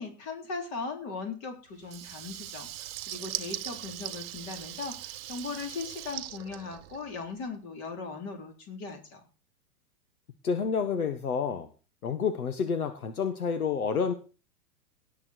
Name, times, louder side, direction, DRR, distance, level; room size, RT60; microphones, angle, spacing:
voice 1, 0.0-9.2, left 4 dB, 30° left, 4 dB, 4.0 m, -38 dB
Water tap faucet / Liquid, 1.8-7.3, right 14 dB, 40° right, 1.0 m, -40 dB
voice 2, 10.4-11.7 12.0-14.1, left 6 dB, 70° left, 9 dB, 1.5 m, -29 dB
18.0 x 7.6 x 4.6 m, 0.35 s
figure-of-eight pair, 105°, 46 cm